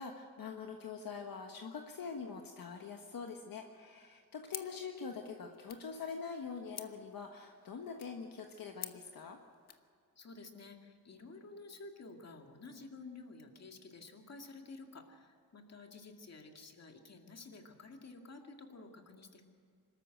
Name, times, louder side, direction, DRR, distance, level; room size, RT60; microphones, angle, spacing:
voice 1, 0.0-9.4, left 5 dB, 65° left, 3 dB, 1.5 m, -44 dB
sound 1, 4.5-9.9, left 9 dB, 85° left, 1.0 m, -51 dB
voice 2, 10.2-19.4, left 3 dB, 45° left, 3 dB, 2.3 m, -52 dB
25.0 x 13.5 x 7.8 m, 2.2 s
wide cardioid pair, 125°, 37 cm